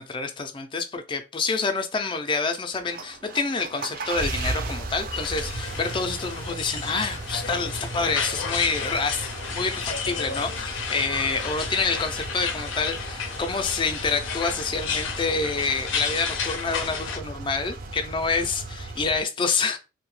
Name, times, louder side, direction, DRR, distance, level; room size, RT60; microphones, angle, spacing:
voice 1, 0.0-19.8, left 4 dB, 25° left, 0.4 m, -27 dB
sound 1, 2.7-19.2, right 2 dB, 50° right, 0.4 m, -36 dB
sound 2, 5.1-17.2, left 6 dB, 80° left, 0.5 m, -33 dB
2.7 x 2.1 x 3.1 m
head